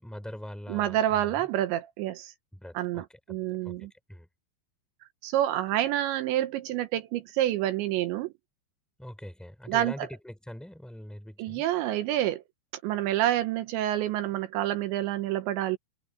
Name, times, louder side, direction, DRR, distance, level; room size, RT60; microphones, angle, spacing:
voice 1, 0.0-1.5 2.5-3.4 3.6-3.8 4.1-4.3 9.0-11.6, left 1 dB, ahead, 6.3 m, -42 dB
voice 2, 0.7-2.3 2.7-3.9 5.2-8.3 9.7-10.1 11.4-12.4 12.8-15.8, right 13 dB, 80° right, 3.2 m, -28 dB
omnidirectional pair, 5.3 m